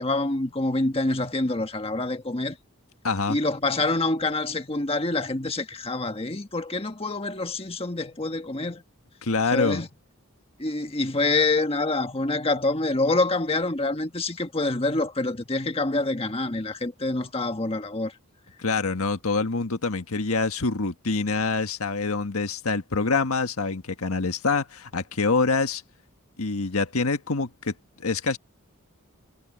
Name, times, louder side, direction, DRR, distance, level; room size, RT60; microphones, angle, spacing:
voice 1, 0.0-2.6 3.3-8.8 9.5-9.9 10.6-18.1, left 2 dB, 25° left, 1.4 m, -26 dB
voice 2, 3.0-3.4 9.2-9.8 18.6-25.8 26.4-28.4, left 4 dB, 80° left, 1.6 m, -26 dB
head